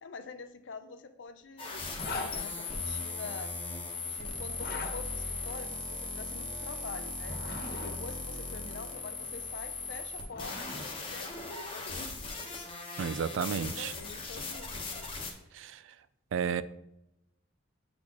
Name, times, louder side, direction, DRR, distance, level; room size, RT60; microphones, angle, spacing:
voice 1, 0.0-3.5 4.1-7.4 7.7-12.6 13.3-15.1, left 4 dB, 75° left, 10 dB, 0.5 m, -46 dB
sound 1, 1.6-15.3, left 3 dB, 30° left, 1.0 m, -38 dB
Zipper (clothing), 1.9-2.3 4.5-4.9 7.1-7.9 9.8-10.9, left 3 dB, 55° left, 1.2 m, -40 dB
voice 2, 13.0-13.9 15.5-15.8 16.3-16.6, right 7 dB, 85° right, 16 dB, 0.3 m, -32 dB
8.7 x 4.2 x 2.9 m, 0.85 s
head